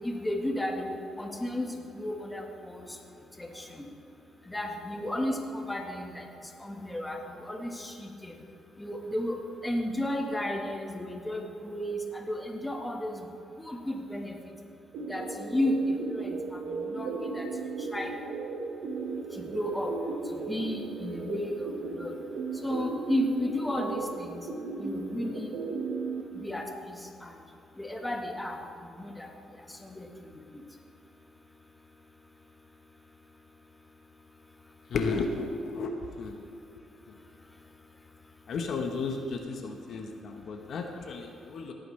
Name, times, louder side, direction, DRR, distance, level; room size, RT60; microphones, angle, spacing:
voice 1, 0.0-2.9 3.4-3.7 4.5-6.3 6.6-7.9 8.2-8.3 8.8-9.4 9.6-13.3 13.7-14.3 15.1-16.4 16.8-17.5 17.9-18.1 19.4-20.0 20.5-22.1 22.6-24.4 24.8-25.6 26.3-27.0 27.2-27.3 27.8-28.6 29.0-29.3 29.8-30.1, left 1 dB, 10° left, 2 dB, 1.4 m, -33 dB
sound 1, 14.9-26.2, right 3 dB, 80° right, 1.3 m, -36 dB
voice 2, 34.9-36.4 38.5-41.7, left 4 dB, 65° left, 4 dB, 1.1 m, -33 dB
17.5 x 9.1 x 3.3 m, 2.6 s
cardioid pair, 90°, 0 cm